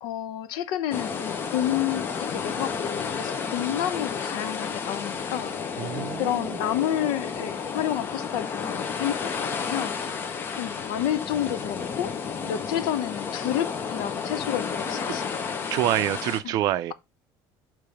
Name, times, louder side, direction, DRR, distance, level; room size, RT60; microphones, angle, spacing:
voice 1, 0.0-5.5 6.1-9.9 10.6-12.1 12.5-15.5 16.4-16.6, left 11 dB, 65° left, 0.7 m, -30 dB
sound 1, 0.9-16.4, left 6 dB, 25° left, 0.7 m, -31 dB
voice 2, 5.8-6.3 15.1-15.2 15.7-16.9, right 13 dB, 45° right, 0.5 m, -26 dB
6.9 x 3.2 x 4.8 m
cardioid pair, 180°, 9 cm